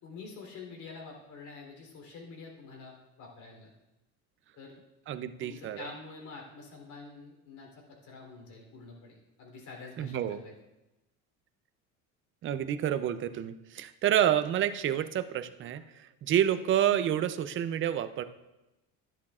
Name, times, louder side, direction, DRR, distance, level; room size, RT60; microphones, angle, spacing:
voice 1, 0.0-3.7 4.6-4.8 5.4-10.5, left 4 dB, 60° left, 0 dB, 3.4 m, -47 dB
voice 2, 5.1-5.9 10.0-10.4 12.4-18.2, right 10 dB, 35° right, 11 dB, 0.5 m, -29 dB
11.5 x 11.0 x 2.4 m, 0.98 s
cardioid pair, 130°, 34 cm